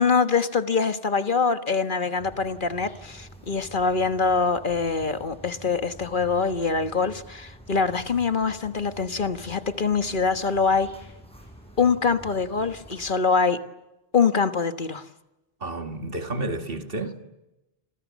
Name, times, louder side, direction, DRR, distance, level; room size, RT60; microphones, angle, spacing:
voice 1, 0.0-10.9 11.8-13.6 14.1-15.0, left 5 dB, 55° left, 1.5 m, -24 dB
sound 1, 2.2-13.1, right 1 dB, 5° left, 7.4 m, -47 dB
voice 2, 15.6-17.2, right 2 dB, 65° right, 2.6 m, -31 dB
30.0 x 27.0 x 7.4 m
omnidirectional pair, 1.0 m